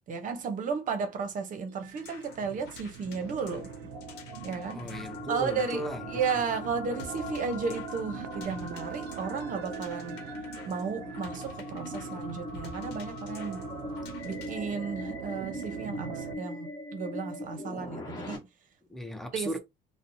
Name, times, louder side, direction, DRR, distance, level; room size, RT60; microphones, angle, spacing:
voice 1, 0.1-3.8 4.4-4.9 5.3-10.2 10.7-13.7 14.2-18.5 19.3-19.5, right 5 dB, 50° right, 0.7 m, -34 dB
sound 1, 1.7-16.3, right 10 dB, 85° right, 0.4 m, -43 dB
sound 2, 1.9-14.6, left 4 dB, 80° left, 0.8 m, -51 dB
sound 3, 3.3-18.4, left 2 dB, 25° left, 1.2 m, -41 dB
voice 2, 4.7-6.0 18.9-19.6, equal, ahead, 0.5 m, -36 dB
2.7 x 2.1 x 2.5 m
cardioid pair, 110°, 17 cm